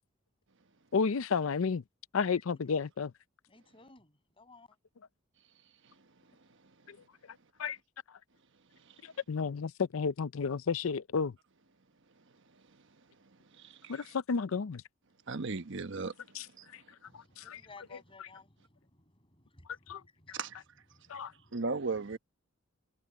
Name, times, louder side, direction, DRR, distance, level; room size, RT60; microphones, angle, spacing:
voice 1, 0.9-1.8 2.1-3.1 6.9-7.0 7.6-7.8 9.0-11.3 13.9-14.8 16.3-16.5 17.1-17.6 19.9-20.0 21.1-21.3, left 5 dB, 85° left, 0.5 m, -32 dB
voice 2, 3.5-4.8 17.1-20.4 20.9-21.7, left 3 dB, 25° left, 7.3 m, -57 dB
voice 3, 13.5-14.0 15.3-16.1 16.6-16.7 20.3-20.6 21.5-22.2, right 4 dB, 65° right, 1.2 m, -36 dB
head